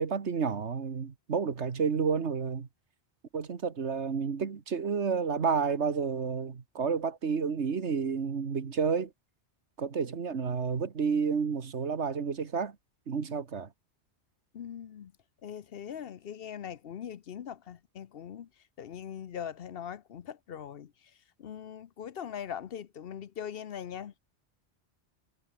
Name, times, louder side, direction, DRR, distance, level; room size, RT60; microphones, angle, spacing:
voice 1, 0.0-2.7 3.3-9.1 9.8-12.8 13.1-13.7, right 5 dB, 85° right, 1.8 m, -30 dB
voice 2, 14.5-15.1 15.4-18.5 18.8-20.9 21.4-24.1, left 8 dB, 60° left, 0.9 m, -41 dB
omnidirectional pair, 1.1 m